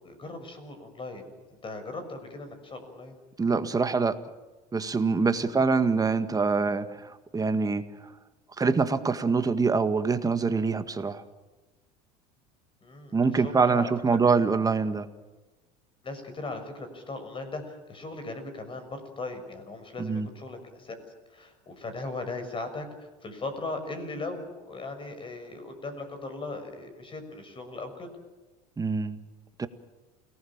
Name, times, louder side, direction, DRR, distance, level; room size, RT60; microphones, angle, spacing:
voice 1, 0.0-1.2 1.6-3.1 12.8-13.9 16.0-20.9 21.3-28.1, left 3 dB, 25° left, 8 dB, 6.6 m, -38 dB
voice 2, 3.4-4.2 4.7-6.9 7.3-7.9 8.6-11.2 13.1-15.1 20.0-20.3 28.8-29.2 29.6-29.7, right 4 dB, 20° right, 10 dB, 1.9 m, -24 dB
29.0 x 19.0 x 7.4 m, 1.2 s
supercardioid pair, 100°, 20 cm